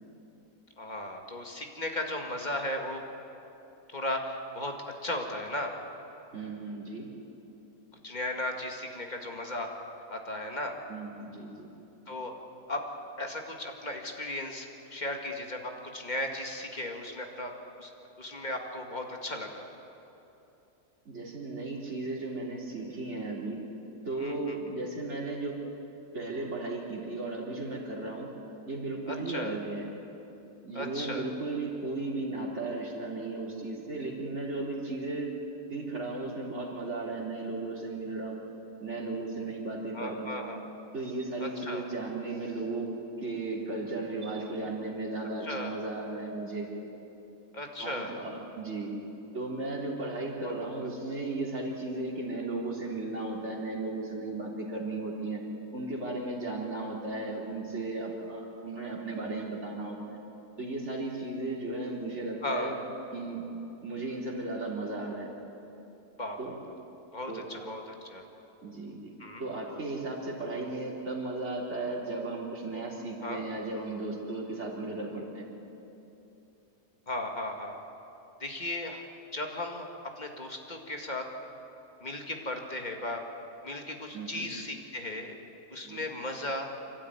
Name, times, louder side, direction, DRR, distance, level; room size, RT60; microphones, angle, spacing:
voice 1, 0.8-3.0 3.9-4.7 5.0-5.7 8.0-9.7 10.1-10.7 12.1-12.3 12.7-12.8 13.2-17.5 17.8-17.9 18.2-19.6 24.1-24.6 29.1-29.6 30.7-31.3 39.9-40.6 41.4-41.9 45.4-45.7 47.5-48.1 50.4-50.5 62.4-62.8 66.2-66.7 67.1-68.2 69.2-69.4 73.2-73.4 77.1-77.8 78.4-79.0 79.3-79.9 80.2-81.2 82.0-83.2 83.6-85.4 85.7-86.7, left 1 dB, 25° left, 3 dB, 2.1 m, -36 dB
voice 2, 6.3-7.1 10.9-11.7 21.1-23.6 24.1-25.6 26.1-28.3 28.7-29.9 30.6-35.3 35.7-38.4 38.8-40.4 40.9-42.9 43.2-46.7 47.8-48.9 49.3-55.4 55.7-60.2 60.6-62.7 63.1-63.4 63.8-65.3 66.4-66.5 67.3-67.6 68.6-69.1 69.4-75.5 84.1-84.5 85.8-86.0, right 2 dB, 45° right, -3 dB, 3.8 m, -35 dB
27.5 x 13.0 x 9.5 m, 3.0 s
omnidirectional pair, 1.7 m